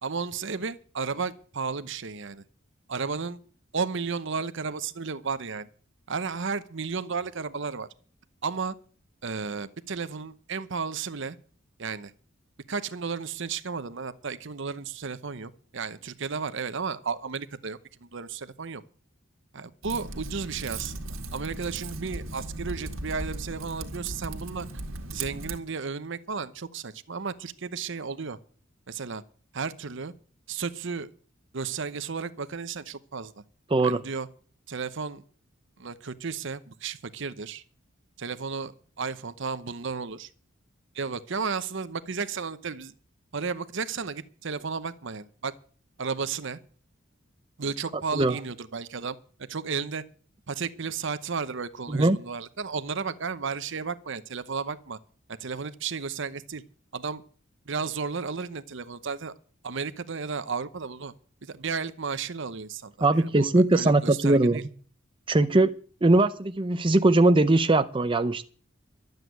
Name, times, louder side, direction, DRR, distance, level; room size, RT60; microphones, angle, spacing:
voice 1, 0.0-2.4 2.9-3.4 3.7-5.7 6.1-7.9 8.4-8.8 9.2-11.4 11.8-12.1 12.7-18.8 19.5-20.9 21.3-24.7 25.1-28.4 28.9-29.2 29.5-30.1 30.5-31.1 31.5-33.4 33.8-34.3 34.7-35.2 35.8-37.6 38.2-40.3 40.9-42.9 43.3-45.5 46.0-46.6 47.6-50.0 50.5-55.0 55.3-56.6 56.9-57.2 57.7-59.3 59.6-61.1 61.4-64.6, right 5 dB, 60° right, 14 dB, 0.8 m, -33 dB
Typing, 19.8-25.6, right 2 dB, 80° right, 1.9 m, -37 dB
voice 2, 33.7-34.0 48.1-48.4 51.9-52.2 63.0-64.7 65.3-65.7 66.0-68.5, right 2 dB, 25° right, 9 dB, 0.6 m, -21 dB
12.5 x 7.9 x 9.3 m, 0.44 s
head